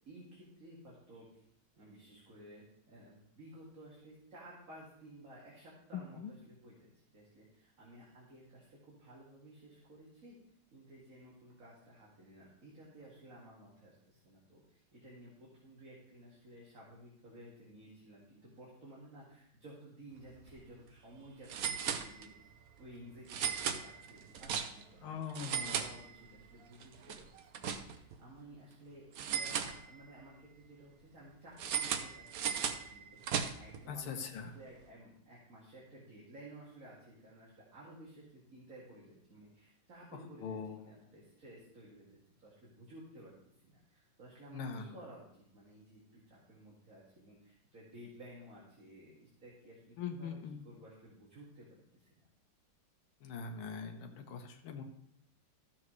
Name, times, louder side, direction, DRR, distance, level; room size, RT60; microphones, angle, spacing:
voice 1, 0.1-1.4 1.8-10.4 10.7-22.5 22.8-25.3 25.6-27.3 27.5-32.3 32.6-43.3 43.6-51.7 51.9-52.1, right 1 dB, 40° right, -6 dB, 2.3 m, -55 dB
voice 2, 5.9-6.3 25.0-25.9 33.9-34.5 40.1-40.9 44.5-44.9 50.0-50.6 53.2-54.8, left 6 dB, 85° left, 4 dB, 1.7 m, -42 dB
sound 1, 20.3-20.5 20.8-20.9 21.5-22.5 23.3-25.0 25.3-26.5 26.8-28.2 29.2-30.3 31.6-33.8, right 7 dB, 70° right, 0.8 m, -37 dB
13.5 x 7.1 x 3.1 m, 0.70 s
omnidirectional pair, 2.3 m